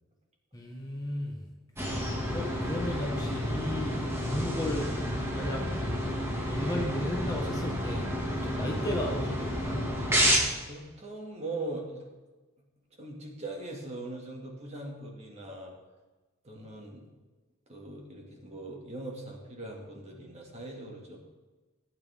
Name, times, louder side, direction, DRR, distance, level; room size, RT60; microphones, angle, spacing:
voice 1, 0.5-1.4 2.3-4.9 5.3-5.6 6.4-8.0 8.4-9.9, left 1 dB, 15° left, -1 dB, 1.4 m, -35 dB
sound 1, 1.8-10.4, equal, 10° right, 2.0 m, -30 dB
voice 2, 10.7-12.1 13.0-15.7 16.4-17.0 17.7-21.2, right 2 dB, 30° right, -1 dB, 2.2 m, -40 dB
16.5 x 9.3 x 3.6 m, 1.2 s
head